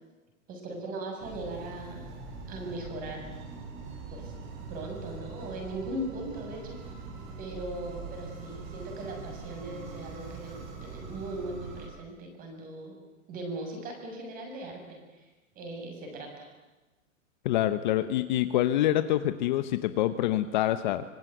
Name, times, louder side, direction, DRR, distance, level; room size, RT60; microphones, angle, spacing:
voice 1, 0.5-2.1 2.5-3.3 4.1-4.3 4.7-6.8 7.4-12.9 13.3-15.0 15.6-16.5, right 1 dB, 20° right, 3 dB, 7.0 m, -39 dB
sound 1, 1.2-11.9, right 4 dB, 35° right, 6.6 m, -42 dB
voice 2, 17.4-21.0, left 13 dB, 35° left, 11 dB, 1.0 m, -26 dB
25.5 x 23.5 x 9.3 m, 1.1 s
hypercardioid pair, 165°, 39 cm